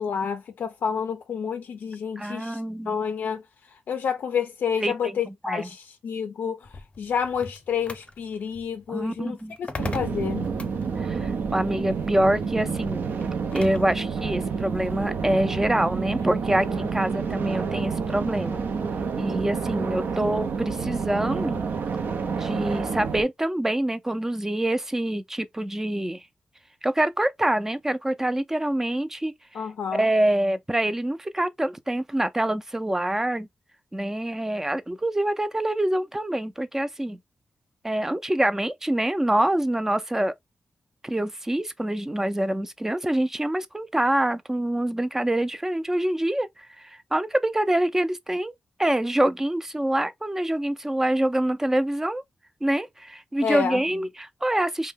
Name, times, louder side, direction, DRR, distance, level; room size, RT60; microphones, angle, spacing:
voice 1, 0.0-2.6 2.9-3.4 3.9-10.5 29.5-30.1 53.4-53.8, left 7 dB, 80° left, 0.3 m, -29 dB
voice 2, 2.2-3.0 4.8-5.7 8.9-9.6 11.0-13.1 13.5-18.6 19.2-21.6 22.4-26.3 26.8-29.3 29.9-33.5 33.9-37.2 37.8-40.3 41.0-46.5 46.8-48.5 48.8-52.2 52.6-54.9, right 1 dB, 15° right, 0.4 m, -25 dB
sound 1, 6.6-14.0, left 3 dB, 40° left, 0.6 m, -41 dB
sound 2, 9.8-23.2, right 5 dB, 75° right, 0.5 m, -29 dB
2.7 x 2.1 x 3.3 m
cardioid pair, 80°, 3 cm